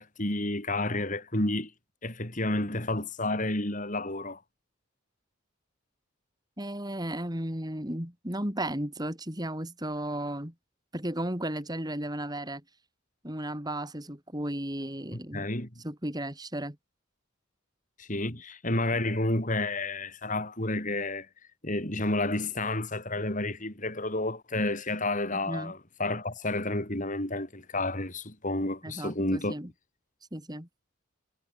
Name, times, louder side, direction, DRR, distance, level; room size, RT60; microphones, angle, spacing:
voice 1, 0.0-1.7 2.0-4.4 15.3-15.7 18.0-21.3 21.6-29.5, left 2 dB, 40° left, 4.5 m, -30 dB
voice 2, 6.6-10.5 10.9-12.6 13.2-15.5 15.8-16.8 25.3-25.7 28.8-29.7 30.3-30.7, right 1 dB, 20° right, 4.6 m, -34 dB
head